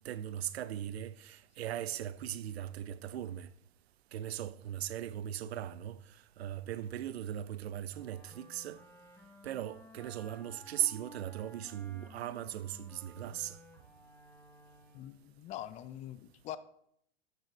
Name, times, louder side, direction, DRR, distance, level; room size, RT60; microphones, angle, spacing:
voice 1, 0.0-3.5 4.1-8.8 9.4-13.6, right 11 dB, 70° right, 0.6 m, -38 dB
Wind instrument woodwind instrument, 7.9-15.3, equal, 5° left, 1.4 m, -56 dB
voice 2, 14.9-16.6, left 12 dB, 20° left, 0.5 m, -44 dB
12.0 x 6.3 x 3.0 m
figure-of-eight pair, 100°, 33 cm